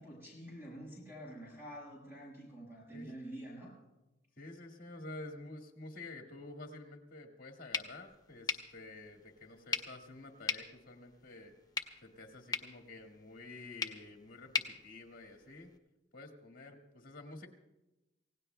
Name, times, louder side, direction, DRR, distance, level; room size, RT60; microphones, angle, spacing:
voice 1, 0.0-3.8, right 1 dB, 10° right, -3 dB, 5.2 m, -48 dB
voice 2, 4.4-11.5 12.0-15.7 16.1-17.5, left 2 dB, 50° left, 2 dB, 1.9 m, -50 dB
sound 1, 7.7-15.8, left 5 dB, 20° left, 0.7 m, -42 dB
28.0 x 17.0 x 2.2 m, 1.0 s
head